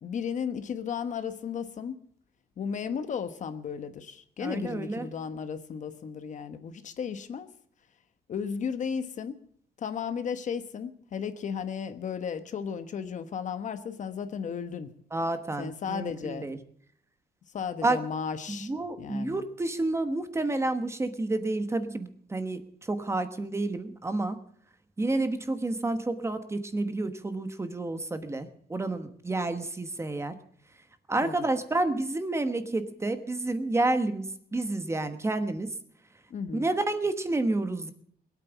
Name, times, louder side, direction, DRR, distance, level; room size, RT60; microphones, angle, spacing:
voice 1, 0.0-2.0 2.6-7.5 8.3-9.4 9.8-14.9 15.6-16.5 17.5-18.7 19.0-19.4 31.2-31.4 36.3-36.7, left 7 dB, 45° left, 1.1 m, -34 dB
voice 2, 4.4-5.1 15.1-16.6 17.8-18.0 18.5-24.4 25.0-30.3 31.1-35.7 36.5-37.9, right 2 dB, 15° right, 1.1 m, -30 dB
21.0 x 8.9 x 7.1 m
cardioid pair, 145°, 17 cm